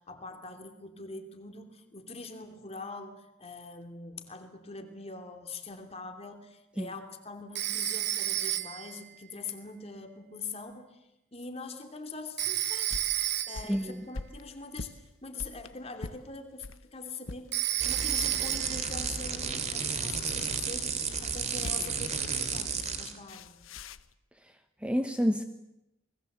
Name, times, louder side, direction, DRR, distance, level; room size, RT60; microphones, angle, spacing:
voice 1, 0.0-13.1 13.5-17.5 17.8-23.6, left 3 dB, 30° left, 6 dB, 2.9 m, -43 dB
Telephone, 7.5-9.0 12.4-13.8 17.5-18.9, right 13 dB, 55° right, 1.1 m, -31 dB
sound 1, 12.4-16.8 17.2-17.5 17.9-19.3 20.9-22.1 23.3-24.1, left 3 dB, 85° left, 0.9 m, -44 dB
voice 2, 13.7-14.0 24.8-25.4, equal, 5° right, 9 dB, 0.9 m, -28 dB
sound 2, 17.8-23.2, right 5 dB, 35° right, 2.6 m, -33 dB
28.5 x 20.5 x 8.0 m, 0.87 s
head